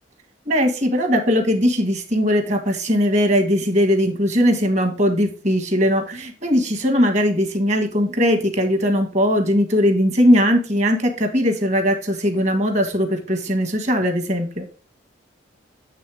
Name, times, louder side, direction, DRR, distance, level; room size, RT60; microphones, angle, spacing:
voice 1, 0.5-14.7, equal, 40° right, 6 dB, 1.4 m, -19 dB
8.4 x 3.5 x 4.7 m, 0.36 s
head